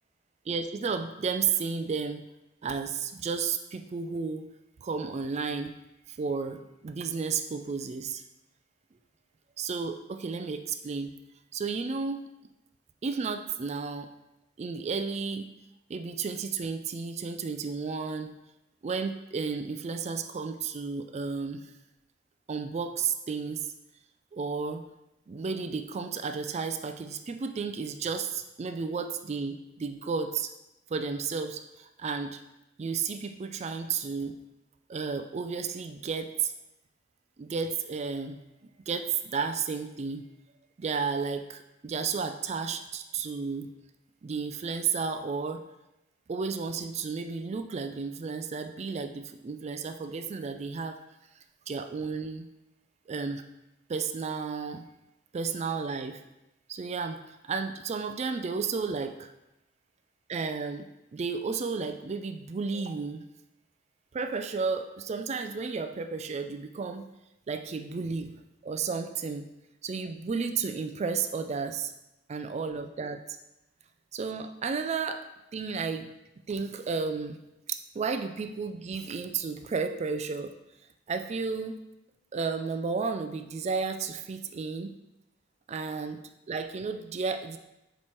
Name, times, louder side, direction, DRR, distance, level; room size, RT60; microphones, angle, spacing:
voice 1, 0.5-2.2 2.6-4.5 4.8-5.7 6.1-8.2 9.6-11.1 11.5-12.2 13.0-14.1 14.6-15.5 15.9-18.3 18.8-21.7 22.5-23.6 24.3-24.8 25.3-30.5 30.9-32.4 32.8-34.4 34.9-36.5 37.4-38.4 38.9-40.2 40.8-43.7 44.2-45.6 46.3-51.0 51.7-52.5 53.1-53.4 53.9-54.8 55.3-56.2 56.7-59.3 60.3-63.2 64.1-67.1 67.5-68.4 68.6-69.5 69.8-71.9 72.3-73.4 74.1-75.2 75.5-76.1 76.5-77.4 77.7-80.5 81.1-81.8 82.3-84.9 85.7-86.2 86.5-87.6, right 5 dB, 35° right, 7 dB, 0.3 m, -32 dB
7.5 x 3.1 x 4.4 m, 0.91 s
head